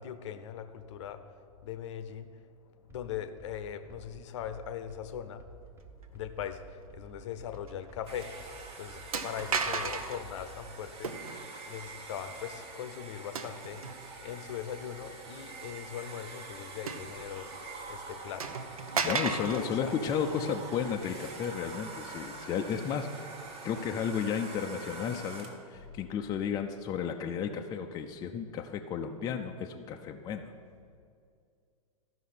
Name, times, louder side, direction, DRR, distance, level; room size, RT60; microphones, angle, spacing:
voice 1, 0.0-1.3 1.6-5.5 5.9-13.8 14.2-18.6 18.9-20.0, left 9 dB, 50° left, 10 dB, 0.7 m, -40 dB
sound 1, 2.9-10.7, right 2 dB, 15° right, 0.7 m, -52 dB
sound 2, 7.7-7.9 8.2-8.3 9.1-10.2 11.0-11.5 13.3-14.1 14.7-14.8 16.9-17.6 17.9-18.0 18.4-19.7, right 5 dB, 70° right, 0.7 m, -34 dB
Domestic sounds home sounds, 8.1-25.7, right 3 dB, 30° right, 1.2 m, -45 dB
voice 2, 19.0-23.3 23.6-30.5, left 7 dB, 20° left, 4 dB, 0.5 m, -33 dB
13.0 x 5.6 x 5.5 m, 2.3 s
figure-of-eight pair, 105°, 19 cm